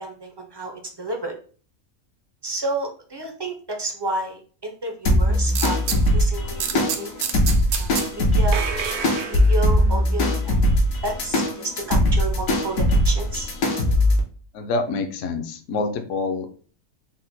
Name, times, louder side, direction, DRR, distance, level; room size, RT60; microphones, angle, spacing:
voice 1, 0.0-1.3 2.4-7.1 7.8-8.6 9.3-10.6 11.0-13.5, right 2 dB, 35° right, 3 dB, 0.4 m, -31 dB
sound 1, 5.1-14.2, left 1 dB, 90° left, 1.3 m, -20 dB
sound 2, 5.5-6.1 6.6-8.1 8.5-9.9, right 7 dB, 65° right, 0.8 m, -28 dB
voice 2, 14.5-16.5, left 3 dB, 70° left, 5 dB, 0.9 m, -26 dB
4.2 x 2.1 x 4.0 m, 0.42 s
omnidirectional pair, 1.4 m